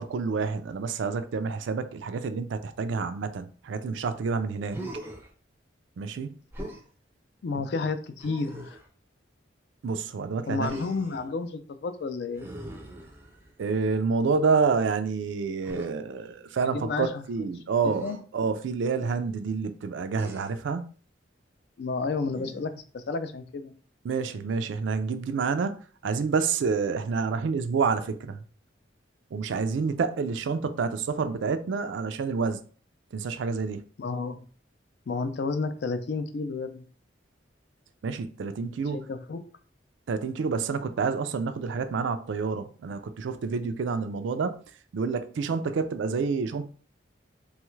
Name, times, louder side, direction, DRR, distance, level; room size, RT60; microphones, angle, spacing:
voice 1, 0.0-4.8 6.0-6.3 7.5-7.6 9.8-10.7 13.6-18.1 18.3-20.9 24.0-25.7 26.0-28.4 29.3-32.6 33.1-33.8 38.0-39.0 40.1-44.6 44.9-46.7, right 5 dB, 75° right, 0.4 m, -28 dB
Human voice, 4.7-5.3 6.5-6.9 8.2-8.9 10.6-11.3 12.4-13.6 15.6-15.9 17.9-18.2 20.1-20.7 22.3-22.8, right 1 dB, 10° right, 0.4 m, -40 dB
voice 2, 7.4-8.8 10.5-12.5 16.6-17.2 17.8-18.2 21.8-23.7 34.0-34.4 35.1-36.8 38.9-39.4, left 4 dB, 60° left, 0.4 m, -31 dB
3.1 x 2.3 x 3.1 m
head